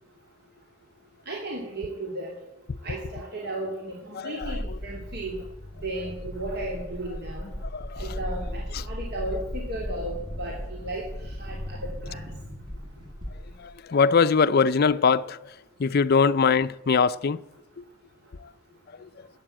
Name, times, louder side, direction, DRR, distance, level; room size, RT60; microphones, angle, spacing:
voice 1, 1.3-2.3 2.8-5.4 5.8-7.5 8.0-11.0 11.4-12.2, right 1 dB, 50° right, 2.7 m, -35 dB
voice 2, 4.1-4.8 7.6-8.2 8.7-8.8 13.6-15.4 15.8-17.4 19.0-19.1, left 5 dB, 45° left, 0.5 m, -22 dB
sound 1, 4.4-13.8, equal, 20° right, 1.6 m, -36 dB
12.5 x 8.7 x 8.9 m
head